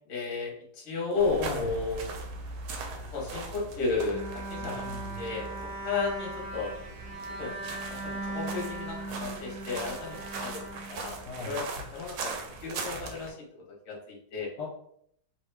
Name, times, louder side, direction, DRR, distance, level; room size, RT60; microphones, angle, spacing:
voice 1, 0.1-2.1 3.1-4.9 5.2-5.5 5.8-6.7 7.4-7.5 7.8-11.6 11.9-12.3 12.6-13.4 13.9-14.5, left 4 dB, 50° left, -2 dB, 1.0 m, -33 dB
sound 1, 1.2-13.3, right 3 dB, 75° right, 1.0 m, -40 dB
voice 2, 1.4-1.7 4.6-5.3 11.3-11.6 14.6-14.7, left 4 dB, 70° left, -4 dB, 1.1 m, -38 dB
Bowed string instrument, 4.1-11.5, right 2 dB, 90° right, 1.5 m, -39 dB
3.1 x 2.2 x 3.2 m, 0.68 s
omnidirectional pair, 2.1 m